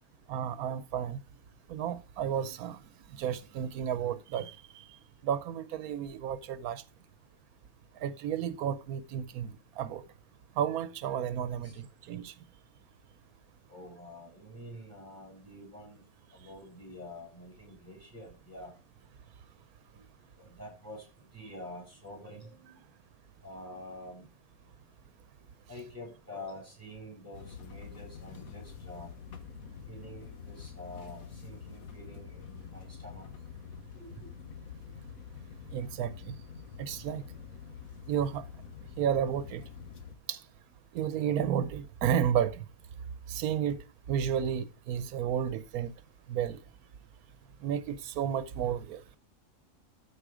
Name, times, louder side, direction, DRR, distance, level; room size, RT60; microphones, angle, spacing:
voice 1, 0.3-1.2 1.7-2.8 3.1-4.9 5.2-6.8 8.0-9.5 9.8-10.0 10.6-12.3 35.7-36.3 36.8-37.2 38.1-38.4 39.0-39.6 40.3-40.4 40.9-42.6 43.3-43.8 44.1-45.9 46.3-46.6 47.6-49.0, right 9 dB, 90° right, 1.2 m, -32 dB
voice 2, 13.7-16.0 16.3-18.7 19.9-20.0 20.4-21.1 21.3-22.7 23.4-24.3 25.7-29.1 29.9-33.3 33.9-34.3, left 1 dB, 10° right, 7.0 m, -47 dB
sound 1, 27.3-40.2, left 6 dB, 75° left, 1.6 m, -47 dB
13.0 x 4.9 x 4.9 m
omnidirectional pair, 1.5 m